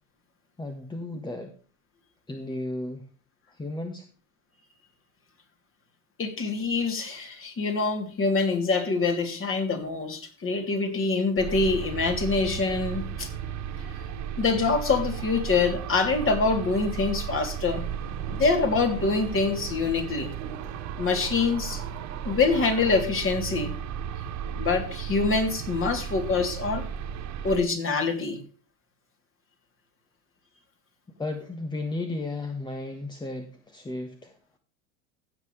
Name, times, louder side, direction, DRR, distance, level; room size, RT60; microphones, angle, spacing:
voice 1, 0.6-1.5 2.3-3.1 3.5-4.0 31.2-34.4, left 2 dB, 10° left, 1.4 m, -34 dB
voice 2, 6.2-13.3 14.4-17.8 18.3-20.3 21.0-21.8 22.2-23.7 24.6-26.8 27.4-28.4, left 4 dB, 30° left, 3.2 m, -25 dB
sound 1, 11.4-27.6, right 8 dB, 40° right, 2.0 m, -35 dB
sound 2, 17.6-23.0, right 9 dB, 80° right, 2.4 m, -42 dB
16.0 x 7.5 x 3.3 m
hypercardioid pair, 100°, 43 cm